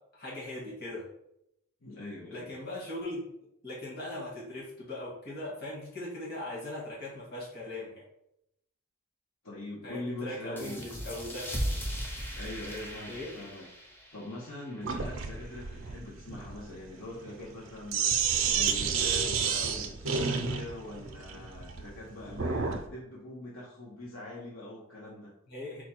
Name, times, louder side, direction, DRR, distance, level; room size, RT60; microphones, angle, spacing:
voice 1, 0.1-1.0 2.3-3.2 3.6-8.0 9.8-11.5 13.1-13.3 25.5-25.8, left 1 dB, 50° left, -6 dB, 1.6 m, -39 dB
voice 2, 1.8-2.5 9.4-10.9 12.4-13.7 14.1-18.1 18.4-25.3, left 1 dB, 75° left, -5 dB, 1.0 m, -42 dB
sound 1, 10.6-15.8, equal, 10° left, 0.6 m, -38 dB
Sink (filling or washing), 14.8-22.9, right 6 dB, 65° right, 0.5 m, -31 dB
4.5 x 2.3 x 4.4 m, 0.79 s
head